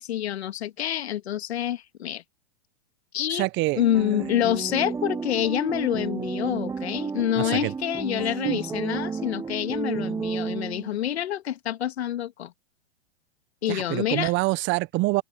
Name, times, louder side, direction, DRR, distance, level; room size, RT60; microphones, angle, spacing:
voice 1, 0.0-2.2 3.1-3.5 3.7-12.5 13.6-14.3, left 11 dB, 75° left, 2.0 m, -27 dB
voice 2, 3.3-3.8 7.4-7.7 8.4-8.6 13.7-15.2, right 21 dB, 35° right, 1.0 m, -26 dB
sound 1, 3.8-11.0, right 5 dB, 10° right, 0.8 m, -32 dB
hypercardioid pair, 115°, 33 cm